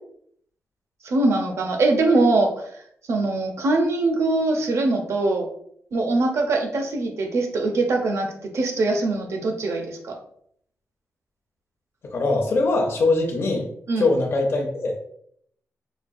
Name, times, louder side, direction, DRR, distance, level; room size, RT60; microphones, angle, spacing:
voice 1, 1.0-2.7 3.1-5.5 5.9-10.2 13.9-14.1, right 2 dB, 65° right, 3 dB, 0.7 m, -22 dB
voice 2, 12.1-13.7 14.0-15.1, left 2 dB, 50° left, 0 dB, 0.7 m, -22 dB
5.0 x 2.3 x 2.5 m, 0.67 s
wide cardioid pair, 120°, 5 cm